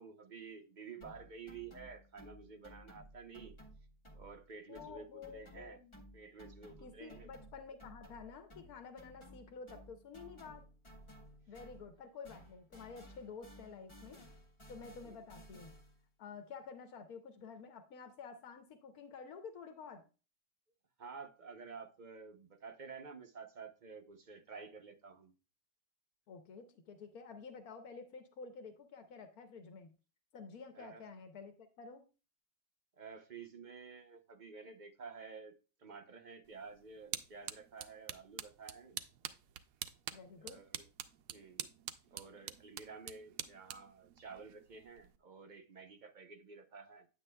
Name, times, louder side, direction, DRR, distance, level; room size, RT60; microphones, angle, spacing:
voice 1, 0.0-3.6 4.1-5.8 6.1-7.3 15.0-15.2 21.0-25.3 30.7-31.1 33.0-39.0 40.4-40.9 41.3-41.7 42.0-47.1, right 5 dB, 45° right, 0.6 m, -51 dB
sound 1, 1.0-4.5 4.7-12.0 12.2-16.0, equal, 20° left, 1.5 m, -57 dB
voice 2, 4.7-6.1 6.8-10.6 11.5-14.2 14.7-15.7 16.2-20.0 26.3-29.9 30.3-32.0 40.1-40.6, left 5 dB, 85° left, 1.3 m, -50 dB
sound 2, 36.5-45.2, right 11 dB, 75° right, 1.0 m, -47 dB
9.4 x 8.3 x 2.2 m
omnidirectional pair, 1.5 m